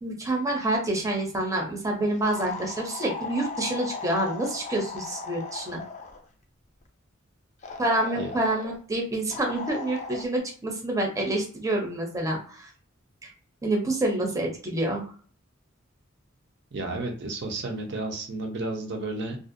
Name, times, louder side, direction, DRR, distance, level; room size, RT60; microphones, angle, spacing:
voice 1, 0.0-5.8 7.8-12.7 13.6-15.0, right 1 dB, 15° right, 0 dB, 0.6 m, -27 dB
sound 1, 2.3-6.2 7.6-8.8 9.3-10.3, left 4 dB, 35° left, 0.4 m, -37 dB
voice 2, 16.7-19.4, right 2 dB, 60° right, 2 dB, 0.6 m, -32 dB
2.4 x 2.1 x 2.6 m, 0.43 s
head